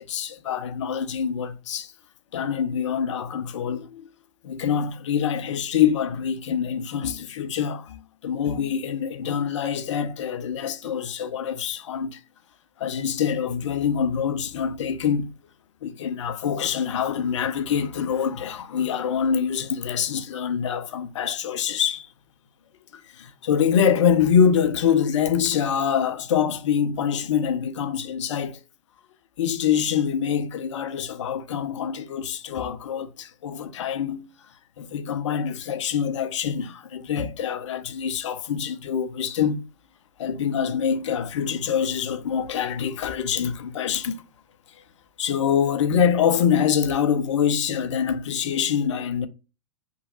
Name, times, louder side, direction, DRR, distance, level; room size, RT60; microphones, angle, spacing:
voice 1, 0.0-1.9 2.3-4.1 4.4-12.2 12.8-15.3 15.8-22.1 23.1-28.6 29.4-34.3 34.8-39.6 40.2-44.2 45.2-49.3, left 8 dB, 60° left, 0.4 m, -25 dB
3.0 x 2.2 x 2.6 m
figure-of-eight pair, 105°, 18 cm